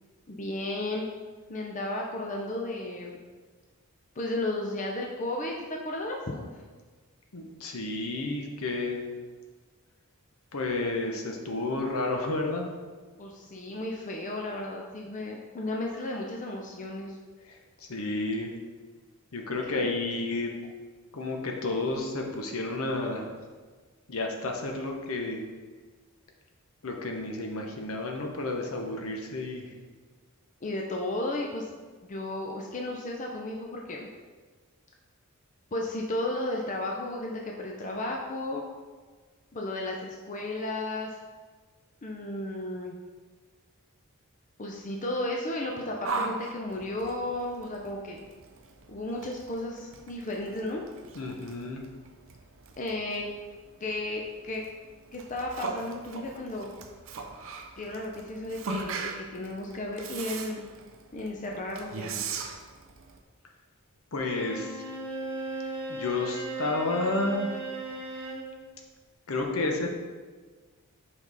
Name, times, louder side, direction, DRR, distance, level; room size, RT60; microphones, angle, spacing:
voice 1, 0.3-1.1 1.5-3.2 4.2-6.5 13.2-17.2 19.6-19.9 30.6-31.7 32.1-34.1 35.7-38.6 39.5-41.2 42.0-43.0 44.6-48.2 48.9-50.8 52.8-53.3 53.8-54.6 55.1-56.7 57.8-60.7 61.1-62.3, left 1 dB, 35° left, 0 dB, 0.5 m, -34 dB
voice 2, 7.3-9.1 10.5-12.7 17.9-18.5 19.3-20.5 21.1-23.2 24.1-25.4 26.8-29.7 51.1-51.8 64.1-64.8 65.9-67.5 69.3-69.9, left 2 dB, 70° left, 2 dB, 0.9 m, -31 dB
Yell, 46.0-63.2, right 4 dB, 60° right, 0.6 m, -40 dB
Bowed string instrument, 64.2-68.5, right 2 dB, 10° left, 1.1 m, -37 dB
5.2 x 5.2 x 4.0 m, 1.4 s
head